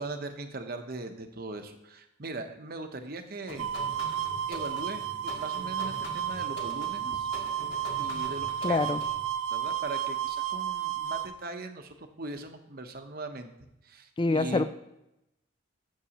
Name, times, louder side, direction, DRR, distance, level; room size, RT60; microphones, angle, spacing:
voice 1, 0.0-3.7 4.5-7.3 8.0-8.9 9.5-13.5 13.8-14.6, right 2 dB, 50° right, 6 dB, 0.9 m, -39 dB
sound 1, 3.4-9.3, left 2 dB, 65° left, 1.5 m, -44 dB
sound 2, 3.6-11.3, right 10 dB, 80° right, 0.6 m, -32 dB
voice 2, 8.6-9.0 14.2-14.6, left 3 dB, 25° left, 11 dB, 0.3 m, -25 dB
12.5 x 7.4 x 2.9 m, 0.87 s
head